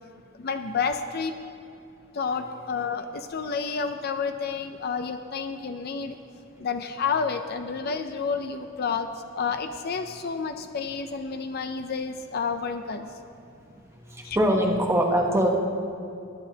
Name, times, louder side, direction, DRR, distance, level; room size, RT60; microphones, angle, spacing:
voice 1, 0.4-1.3 2.1-6.2 6.6-9.1 9.4-13.1 14.2-14.4, left 5 dB, 50° left, 8 dB, 0.5 m, -30 dB
voice 2, 14.1-15.5, equal, 15° right, 0 dB, 1.1 m, -22 dB
20.0 x 10.5 x 2.8 m, 2.6 s
head